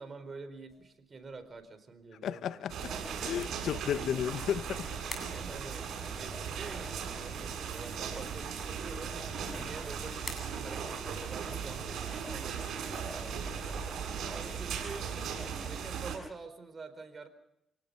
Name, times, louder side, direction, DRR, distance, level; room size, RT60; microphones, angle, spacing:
voice 1, 0.0-3.3 5.2-9.2 9.5-13.8 14.2-15.1 15.6-17.3, right 4 dB, 35° right, 4.5 m, -47 dB
sound 1, 0.7-14.8, left 3 dB, 30° left, 7.9 m, -54 dB
voice 2, 2.2-2.9 3.2-4.9 9.4-9.7, left 9 dB, 75° left, 0.8 m, -34 dB
sound 2, 2.7-16.2, right 6 dB, 70° right, 7.2 m, -38 dB
28.0 x 19.0 x 5.5 m
cardioid pair, 90°, 0 cm